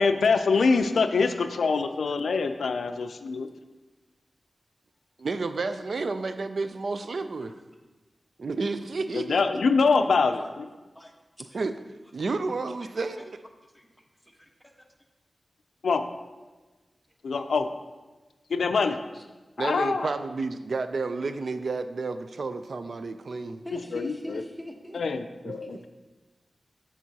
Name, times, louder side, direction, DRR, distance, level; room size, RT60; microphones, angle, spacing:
voice 1, 0.0-3.5 9.1-10.6 15.8-16.0 17.2-17.7 18.5-19.0 19.6-20.1 23.7-24.4 24.9-25.8, left 4 dB, 85° left, 8 dB, 0.4 m, -24 dB
voice 2, 5.2-7.5 8.4-9.4 11.5-11.7 12.1-13.4 19.6-23.6 25.5-25.9, right 3 dB, 70° right, 10 dB, 0.4 m, -31 dB
voice 3, 10.0-10.5 10.9-11.1 12.8-13.0 13.7-13.9 14.2-14.5 19.1-19.2 23.6-25.0 25.6-25.9, left 1 dB, ahead, 1 dB, 1.1 m, -43 dB
7.4 x 6.8 x 2.8 m, 1.2 s
cardioid pair, 40°, 0 cm